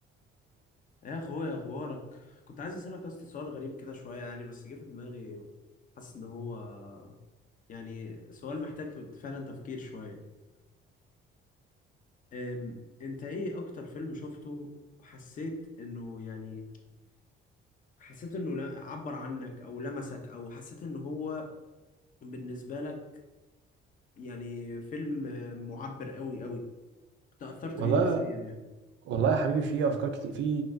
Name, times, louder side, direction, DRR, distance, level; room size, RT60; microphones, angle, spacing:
voice 1, 1.0-5.5 6.0-7.2 7.7-10.2 12.3-14.7 15.0-16.7 18.0-21.5 22.2-23.0 24.2-26.7 27.4-28.6, left 2 dB, 40° left, 2 dB, 0.7 m, -39 dB
voice 2, 27.8-28.2 29.1-30.6, right 5 dB, 70° right, 6 dB, 0.5 m, -27 dB
5.6 x 2.5 x 2.6 m, 1.1 s
cardioid pair, 145°, 20 cm